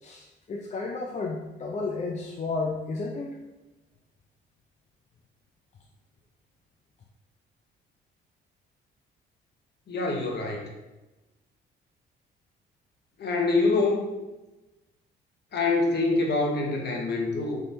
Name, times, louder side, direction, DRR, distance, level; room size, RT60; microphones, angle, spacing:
voice 1, 0.0-3.4, left 3 dB, 35° left, 0 dB, 0.4 m, -32 dB
voice 2, 9.9-10.7 13.2-14.1 15.5-17.6, left 3 dB, 55° left, 0 dB, 0.8 m, -25 dB
3.5 x 2.9 x 2.6 m, 1.0 s
cardioid pair, 75°, 21 cm